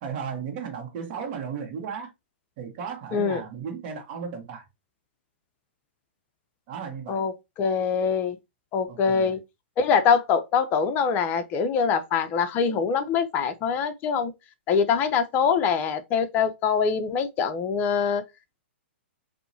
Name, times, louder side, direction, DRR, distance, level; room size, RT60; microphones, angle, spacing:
voice 1, 0.0-2.1 2.6-4.6 6.7-7.3 8.9-9.4, right 6 dB, 45° right, 1.3 m, -35 dB
voice 2, 3.1-3.4 7.1-7.3 7.6-8.4 8.7-9.4 9.8-14.3 14.7-18.2, left 6 dB, 30° left, 0.6 m, -24 dB
4.2 x 2.7 x 2.7 m
hypercardioid pair, 125°, 6 cm